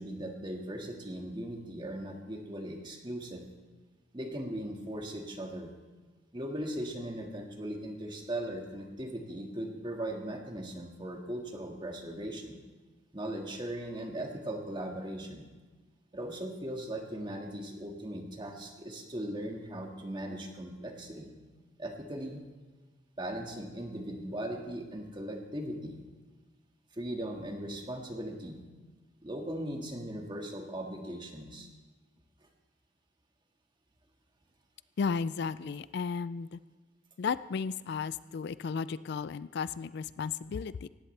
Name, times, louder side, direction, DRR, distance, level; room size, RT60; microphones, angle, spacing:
voice 1, 0.0-3.4 4.1-5.7 6.3-12.6 13.1-15.5 16.1-21.3 21.8-22.4 23.2-26.0 26.9-28.6 29.2-31.7, right 1 dB, 25° right, 2 dB, 1.9 m, -38 dB
voice 2, 35.0-36.6 37.2-40.9, left 5 dB, 60° left, 16 dB, 0.4 m, -34 dB
18.5 x 15.5 x 3.3 m, 1.3 s
head